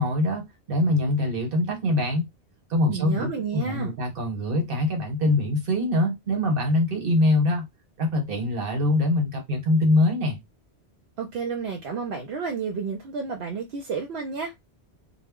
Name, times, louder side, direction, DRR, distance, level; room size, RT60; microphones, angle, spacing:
voice 1, 0.0-2.3 2.7-7.7 8.0-10.4, left 1 dB, 60° right, 1.1 m, -23 dB
voice 2, 2.9-3.9 11.2-14.5, right 5 dB, 75° right, 0.8 m, -31 dB
2.1 x 2.1 x 3.5 m
omnidirectional pair, 1.1 m